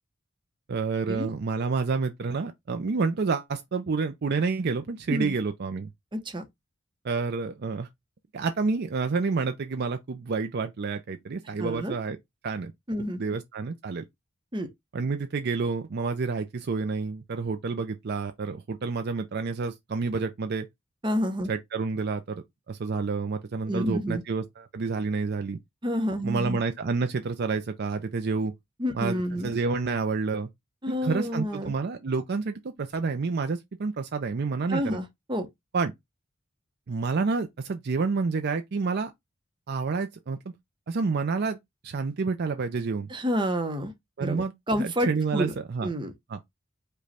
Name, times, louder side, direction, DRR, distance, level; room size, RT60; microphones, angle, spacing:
voice 1, 0.7-5.9 7.0-7.9 8.3-12.2 12.4-12.7 13.2-14.0 14.9-20.7 21.5-25.6 26.2-28.5 28.9-30.5 30.9-35.0 35.7-35.9 36.9-39.1 39.7-40.4 40.9-41.6 41.8-43.1 44.2-44.5 44.8-45.9 46.3-46.4, right 4 dB, 50° right, 0.5 m, -29 dB
voice 2, 6.1-6.4 11.6-12.0 12.9-13.2 14.5-14.7 21.0-21.5 23.7-24.2 25.8-26.6 28.8-29.5 30.8-31.7 34.7-35.5 43.1-43.9 44.2-45.5 45.8-46.1, equal, 25° right, 0.8 m, -29 dB
5.0 x 2.3 x 4.1 m
head